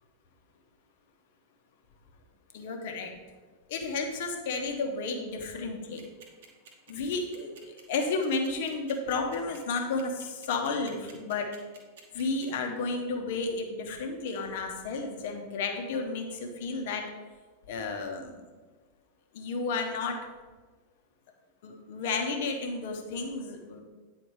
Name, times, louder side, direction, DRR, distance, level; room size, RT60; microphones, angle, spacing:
voice 1, 2.5-3.1 3.7-6.0 6.9-11.5 12.1-17.1 17.7-18.4 19.3-20.2 21.6-23.8, left 3 dB, 55° left, 3 dB, 1.1 m, -32 dB
sound 1, 6.0-12.6, right 6 dB, 60° right, 1.4 m, -51 dB
9.3 x 4.2 x 4.7 m, 1.4 s
figure-of-eight pair, 90°, 0 cm